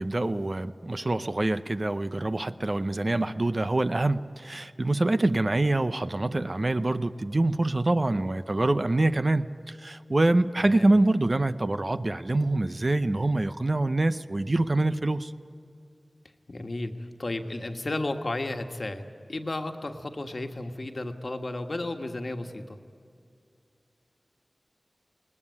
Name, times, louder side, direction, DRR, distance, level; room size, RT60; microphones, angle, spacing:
voice 1, 0.0-15.3, right 2 dB, 45° right, 0.7 m, -25 dB
voice 2, 10.6-10.9 16.5-22.8, left 2 dB, 60° left, 1.5 m, -33 dB
20.5 x 19.0 x 9.6 m
wide cardioid pair, 45°, 0 cm